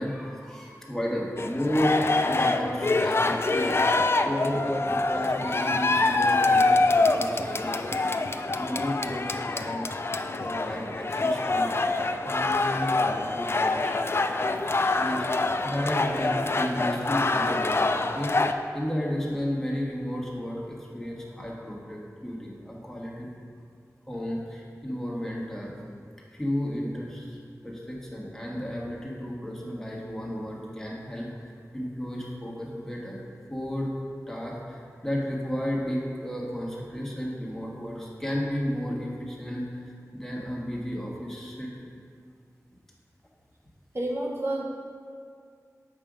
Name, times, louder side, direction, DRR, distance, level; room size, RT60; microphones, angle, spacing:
voice 1, 0.0-7.8 8.5-9.9 10.4-11.7 12.1-14.1 14.5-14.6 14.9-18.4 18.7-23.3 24.1-25.7 26.3-27.4 27.6-33.2 33.5-33.9 34.3-41.9, equal, 5° left, -4 dB, 1.5 m, -33 dB
sound 1, 1.4-18.5, left 3 dB, 45° left, 0.4 m, -25 dB
voice 2, 43.9-44.6, right 1 dB, 45° right, -2 dB, 0.9 m, -29 dB
7.4 x 5.6 x 5.1 m, 2.2 s
wide cardioid pair, 75°, 6 cm